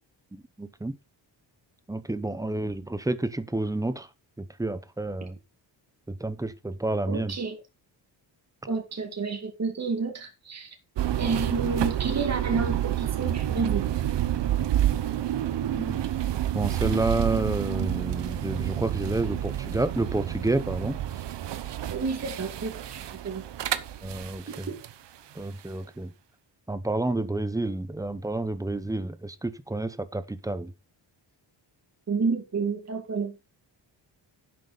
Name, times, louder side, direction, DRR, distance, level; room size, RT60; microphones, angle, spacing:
voice 1, 0.3-0.9 1.9-4.1 4.4-5.4 6.1-7.4 15.7-16.0 16.5-21.0 24.0-24.7 25.4-26.1 26.7-30.7, right 2 dB, 10° right, 0.8 m, -30 dB
voice 2, 7.1-7.6 8.7-10.7 11.2-13.8 21.9-23.4 24.5-24.8 32.1-33.3, right 4 dB, 35° right, 2.1 m, -30 dB
sound 1, 11.0-24.9, right 12 dB, 70° right, 1.1 m, -29 dB
10.5 x 7.8 x 4.0 m
wide cardioid pair, 135°, 44 cm